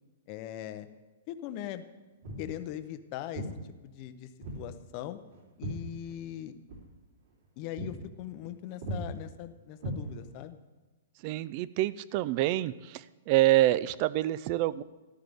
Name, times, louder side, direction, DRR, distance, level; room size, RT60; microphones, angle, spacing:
voice 1, 0.3-0.9 1.3-1.8 2.4-3.5 3.8-4.3 4.5-5.2 5.6-6.5 7.6-10.6, left 12 dB, 30° left, 10 dB, 0.6 m, -40 dB
Walk footsteps, 2.2-2.5 3.3-3.6 4.4-4.7 5.0-6.4 6.7-6.9 7.3-7.5 7.8-8.0 8.3-8.5 8.8-9.0 9.8-10.5, right 1 dB, 50° right, 3.3 m, -38 dB
voice 2, 11.2-12.7 13.3-14.8, right 15 dB, 30° right, 19 dB, 0.3 m, -26 dB
14.5 x 12.5 x 3.5 m, 1.2 s
hypercardioid pair, 175°, 0 cm